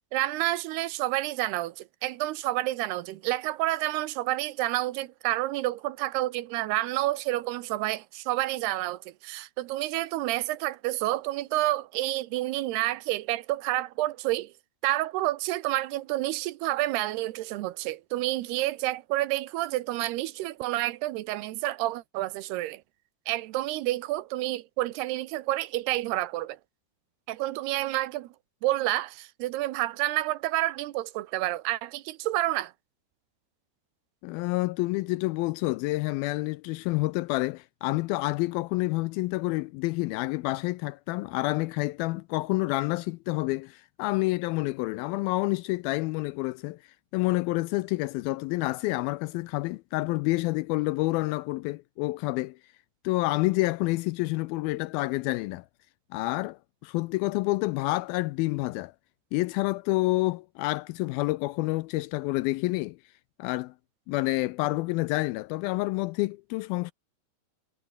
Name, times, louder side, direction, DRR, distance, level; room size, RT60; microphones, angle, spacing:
voice 1, 0.1-14.5 14.8-22.8 23.3-26.6 27.3-28.3 28.6-32.7, right 16 dB, 80° right, 2.9 m, -29 dB
voice 2, 34.2-46.8 47.1-52.6 53.0-55.7 56.1-58.9 59.3-63.0 63.4-63.7 64.1-66.9, left 21 dB, 85° left, 2.1 m, -28 dB
omnidirectional pair, 4.7 m